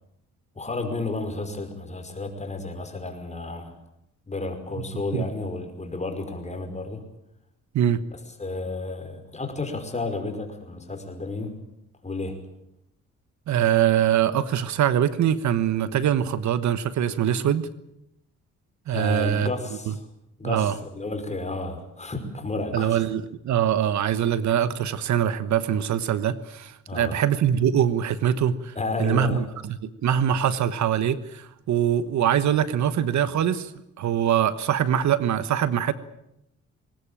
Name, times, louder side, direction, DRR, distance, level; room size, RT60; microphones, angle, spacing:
voice 1, 0.6-3.8 4.3-7.0 8.4-11.6 12.0-12.4 18.9-20.1 20.4-23.0 26.9-27.2 28.8-29.4, left 3 dB, 20° left, 6 dB, 5.3 m, -32 dB
voice 2, 13.5-17.7 18.9-19.5 19.9-20.0 20.4-20.7 22.7-29.4 29.8-33.7 34.0-35.9, right 9 dB, 70° right, 14 dB, 1.3 m, -23 dB
21.5 x 19.0 x 9.0 m, 0.81 s
cardioid pair, 90°, 30 cm